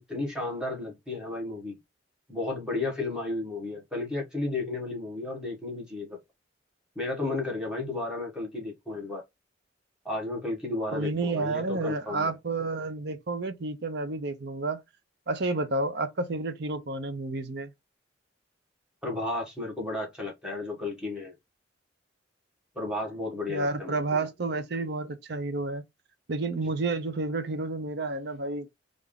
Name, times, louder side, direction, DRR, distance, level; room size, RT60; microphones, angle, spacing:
voice 1, 0.0-1.8 2.3-6.2 6.9-9.2 10.0-12.3 19.0-21.3 22.7-24.0, left 2 dB, 5° right, 1.3 m, -33 dB
voice 2, 10.9-14.8 15.3-17.7 23.5-25.8 26.3-28.7, right 3 dB, 55° right, 0.6 m, -30 dB
3.4 x 2.5 x 3.6 m
head